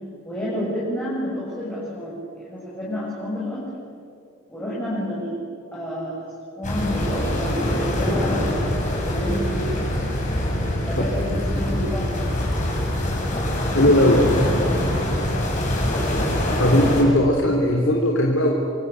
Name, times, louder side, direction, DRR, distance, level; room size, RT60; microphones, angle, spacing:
voice 1, 0.3-3.7 4.5-5.4 5.7-9.9 10.9-12.3, equal, 10° left, -7 dB, 7.2 m, -29 dB
sound 1, 6.6-17.0, left 1 dB, 40° left, 7.6 m, -24 dB
voice 2, 13.7-14.2 16.6-18.5, left 1 dB, 65° left, 0 dB, 3.6 m, -18 dB
27.5 x 24.5 x 8.4 m, 2.3 s
head